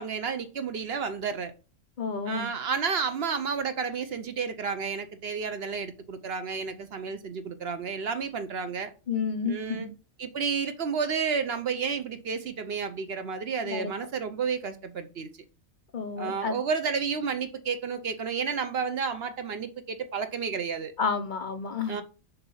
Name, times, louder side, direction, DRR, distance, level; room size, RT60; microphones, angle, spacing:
voice 1, 0.0-1.5 2.3-8.9 9.5-9.9 10.2-15.3 16.2-20.9 21.9-22.0, right 6 dB, 55° right, 0.7 m, -31 dB
voice 2, 2.0-2.5 9.1-9.9 13.6-13.9 15.9-16.6 21.0-22.0, left 5 dB, 50° left, 0.6 m, -30 dB
6.8 x 2.8 x 5.4 m
omnidirectional pair, 1.5 m